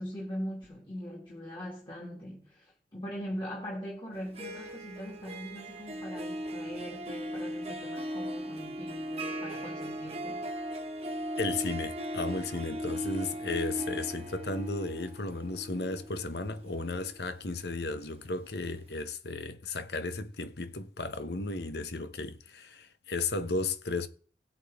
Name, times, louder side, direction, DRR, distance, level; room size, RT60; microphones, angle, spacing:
voice 1, 0.0-10.5, equal, 25° left, 2.2 m, -41 dB
Harp, 4.2-18.1, equal, 35° right, 1.4 m, -38 dB
voice 2, 11.4-24.1, left 3 dB, 70° left, 1.0 m, -34 dB
17.5 x 8.2 x 3.6 m
head